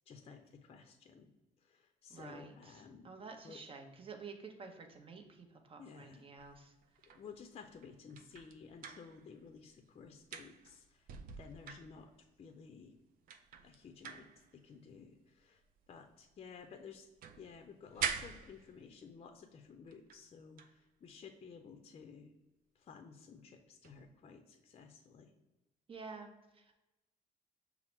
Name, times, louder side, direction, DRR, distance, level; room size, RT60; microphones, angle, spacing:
voice 1, 0.1-1.3 1.6-3.1 3.4-3.6 5.8-6.3 7.0-11.1 11.4-12.9 13.6-15.6 15.9-17.1 17.4-22.3 22.8-25.3, left 5 dB, 40° left, 6 dB, 0.5 m, -54 dB
voice 2, 2.1-6.7 25.9-26.7, right 4 dB, 35° right, 4 dB, 0.8 m, -51 dB
sound 1, 6.4-9.7 10.0-12.4 12.9-13.0 13.2-16.6 16.9-19.1 19.9-20.3 20.6-20.8 23.8-24.1, right 7 dB, 65° right, 0.4 m, -45 dB
5.7 x 2.0 x 4.3 m, 1.0 s
cardioid pair, 85°, 16 cm